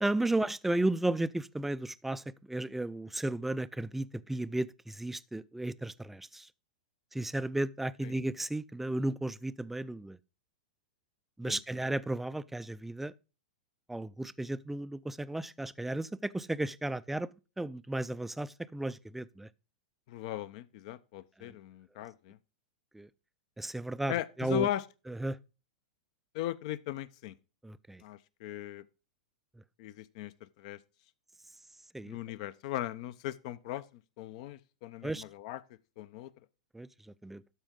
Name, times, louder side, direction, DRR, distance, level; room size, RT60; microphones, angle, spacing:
voice 1, 0.0-6.5 7.1-10.2 11.4-13.1 13.9-17.3 17.6-19.5 21.4-21.5 22.9-23.1 23.6-24.7 25.1-25.4 27.6-28.0 31.9-32.2 35.0-35.2 36.7-36.9 37.2-37.4, right 1 dB, 5° right, 0.4 m, -34 dB
voice 2, 20.1-22.4 24.1-24.8 26.3-27.4 28.0-28.8 29.8-30.8 32.0-33.9 34.2-35.6 36.0-36.3, left 12 dB, 55° left, 0.6 m, -38 dB
12.5 x 4.5 x 3.7 m
hypercardioid pair, 110°, 4 cm